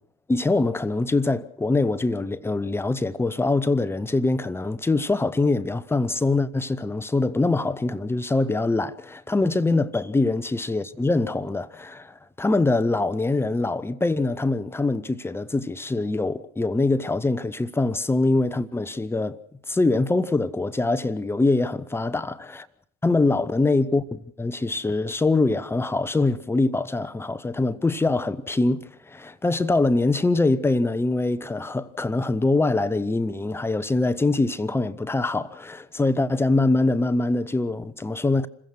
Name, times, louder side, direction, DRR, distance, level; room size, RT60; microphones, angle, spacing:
voice 1, 0.3-19.4 19.7-22.6 23.0-38.5, left 2 dB, 5° left, 0.8 m, -23 dB
27.5 x 15.5 x 6.4 m
figure-of-eight pair, 65°, 35 cm